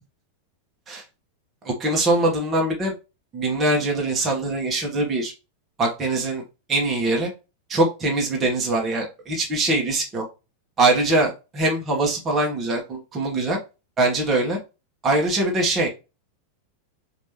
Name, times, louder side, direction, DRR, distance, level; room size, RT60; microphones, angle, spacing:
voice 1, 1.6-2.9 3.3-5.3 5.8-6.4 6.7-7.3 7.7-10.2 10.8-13.6 14.0-14.6 15.0-15.9, right 2 dB, 20° right, -1 dB, 1.6 m, -22 dB
5.0 x 3.0 x 3.1 m, 0.28 s
figure-of-eight pair, 90°, 0 cm